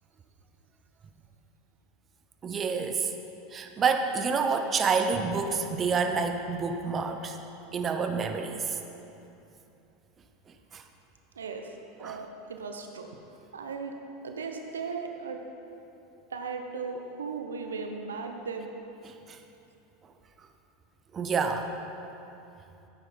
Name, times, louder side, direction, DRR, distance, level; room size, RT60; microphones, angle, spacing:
voice 1, 2.4-3.1 3.5-7.4 7.7-8.8 10.7-10.8 12.0-12.2 19.1-19.4 21.1-21.7, right 5 dB, 30° right, 6 dB, 1.0 m, -28 dB
voice 2, 11.3-14.0 14.2-15.4 16.3-18.7, right 4 dB, 85° right, 4 dB, 0.9 m, -37 dB
15.0 x 8.9 x 4.3 m, 2.8 s
hypercardioid pair, 90°, 0 cm